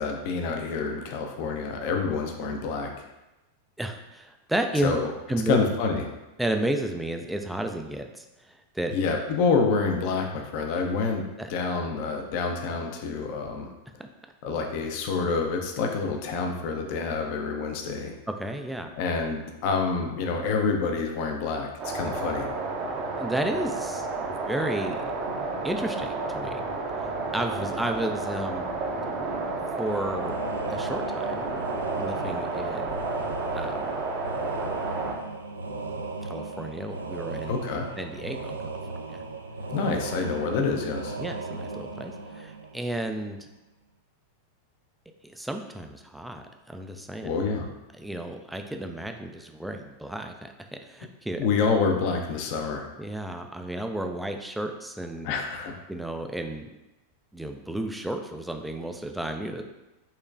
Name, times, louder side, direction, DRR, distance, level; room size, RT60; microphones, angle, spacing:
voice 1, 0.0-2.9 4.8-5.1 5.5-6.0 8.9-11.2 11.5-13.7 14.4-18.2 18.9-22.5 37.5-37.9 39.7-41.1 47.2-47.7 51.4-52.9 55.2-55.7, left 4 dB, 45° left, 3 dB, 0.6 m, -27 dB
voice 2, 3.8-4.9 5.3-5.6 6.4-8.9 11.4-11.5 14.0-14.1 18.4-18.9 23.2-25.1 25.6-26.6 27.0-28.6 29.8-30.4 30.7-31.5 32.0-33.0 33.5-33.9 36.2-37.6 38.0-38.6 39.1-39.2 41.2-43.5 45.2-47.3 47.9-51.5 53.0-55.3 55.9-56.7 57.3-59.6, right 1 dB, 5° right, 5 dB, 0.4 m, -32 dB
sound 1, 21.8-35.1, right 3 dB, 40° right, 0.7 m, -31 dB
sound 2, 29.8-43.3, right 3 dB, 75° right, 0.4 m, -36 dB
5.6 x 3.0 x 2.4 m, 1.0 s
figure-of-eight pair, 90°, 0 cm